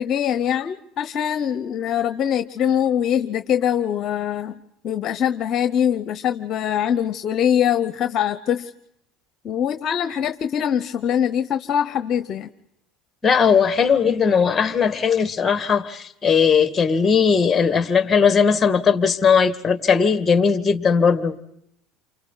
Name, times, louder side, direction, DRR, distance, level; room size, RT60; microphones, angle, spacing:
voice 1, 0.0-4.6 4.8-8.7 9.4-12.5, left 9 dB, 50° left, 9 dB, 0.9 m, -23 dB
voice 2, 13.2-21.3, left 6 dB, 20° left, 9 dB, 2.0 m, -18 dB
29.0 x 25.0 x 4.1 m, 0.76 s
supercardioid pair, 100°, 0 cm